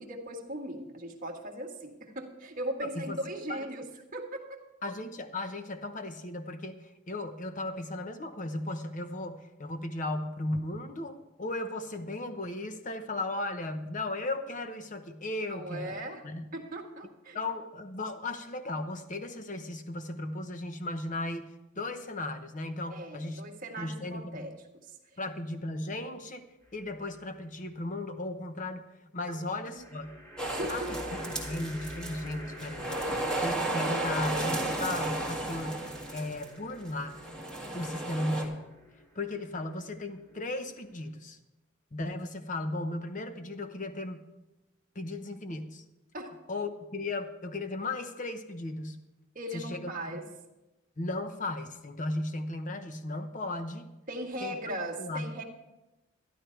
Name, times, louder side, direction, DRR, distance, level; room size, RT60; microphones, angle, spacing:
voice 1, 0.0-3.9 4.1-4.6 15.5-16.2 16.5-17.4 22.9-24.5 29.3-29.4 29.7-29.8 30.5-30.9 46.1-46.3 49.3-50.2 54.1-55.4, right 1 dB, 45° right, 1 dB, 1.7 m, -38 dB
voice 2, 2.8-3.2 3.5-3.6 4.8-16.5 17.3-23.4 23.8-24.5 25.2-26.5 26.7-28.8 29.1-30.2 30.7-31.0 31.3-35.8 36.1-37.2 37.7-38.7 39.1-41.4 41.9-44.2 44.9-45.8 46.5-49.0 49.5-50.2 51.0-53.9 54.4-54.6 55.0-55.4, left 2 dB, 40° left, 8 dB, 0.9 m, -36 dB
sound 1, 26.6-27.3 29.7-41.1, equal, 20° left, 3.5 m, -48 dB
sound 2, 30.4-32.3 32.6-36.5 37.2-38.4, right 1 dB, 5° left, 1.8 m, -33 dB
12.0 x 11.5 x 4.5 m, 0.98 s
head